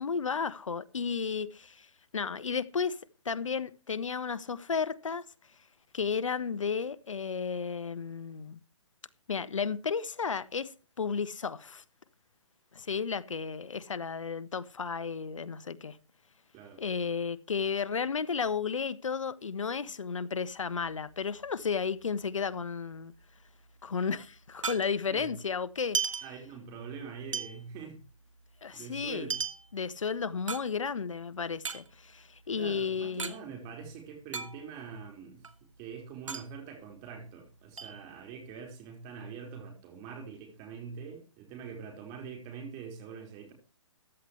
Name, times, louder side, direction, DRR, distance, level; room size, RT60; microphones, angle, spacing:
voice 1, 0.0-1.9 2.1-3.0 3.2-5.2 5.9-8.6 9.3-10.7 11.0-11.8 12.7-16.0 16.8-23.1 23.8-26.0 28.6-29.3 29.7-33.3, left 6 dB, 85° left, 1.2 m, -33 dB
sound 1, 20.6-22.3 22.6-22.7 22.9-25.3 25.7-26.9 27.3-31.1 31.5-33.4 33.6-33.7 34.0-35.0 35.3-37.4 37.8-38.6, right 6 dB, 90° right, 1.8 m, -37 dB
voice 2, 26.2-28.0 28.7-29.4 32.6-35.5 35.8-43.5, right 6 dB, 25° right, 4.8 m, -44 dB
15.0 x 11.0 x 3.2 m
hypercardioid pair, 150°, 16 cm